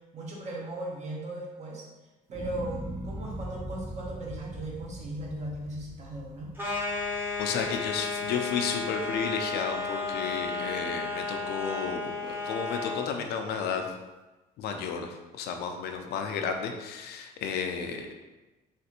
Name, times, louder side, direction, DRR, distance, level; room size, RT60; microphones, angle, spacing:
voice 1, 0.1-1.9 2.3-6.5, right 1 dB, 45° right, -1 dB, 0.8 m, -37 dB
sound 1, 2.3-8.6 9.1-9.6, right 1 dB, 75° right, 1.1 m, -41 dB
sound 2, 6.6-13.1, left 3 dB, 10° right, 0.9 m, -33 dB
voice 2, 7.4-13.9 14.6-18.1, left 6 dB, 70° left, 4 dB, 0.4 m, -32 dB
3.2 x 2.5 x 2.8 m, 1.1 s
cardioid pair, 110°, 17 cm